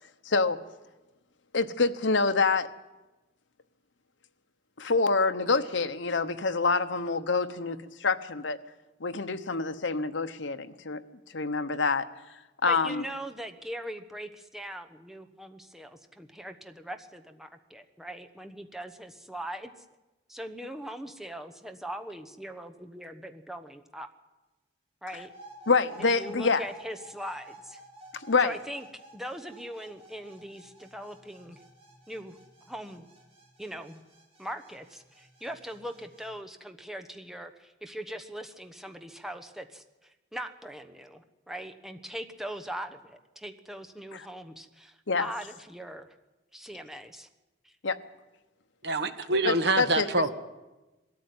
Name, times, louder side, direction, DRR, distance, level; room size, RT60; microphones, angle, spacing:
voice 1, 0.2-0.6 1.5-2.7 4.8-8.6 9.0-11.0 11.3-12.0 12.6-13.0 25.7-26.6 28.1-28.6 44.1-44.2 45.1-45.3 47.8-48.0 49.4-50.2, left 4 dB, 80° left, 10 dB, 1.0 m, -26 dB
voice 2, 12.7-19.7 20.3-24.1 25.0-25.3 26.1-27.8 28.4-28.9 29.1-31.6 32.1-32.4 32.7-33.1 33.6-34.0 34.4-46.1 46.5-47.3 47.6-47.7, equal, ahead, 6 dB, 1.1 m, -41 dB
sound 1, 25.1-36.3, right 1 dB, 30° right, 4.5 m, -52 dB
voice 3, 48.8-50.3, right 2 dB, 60° right, 9 dB, 1.4 m, -26 dB
20.5 x 13.5 x 9.5 m, 1.1 s
head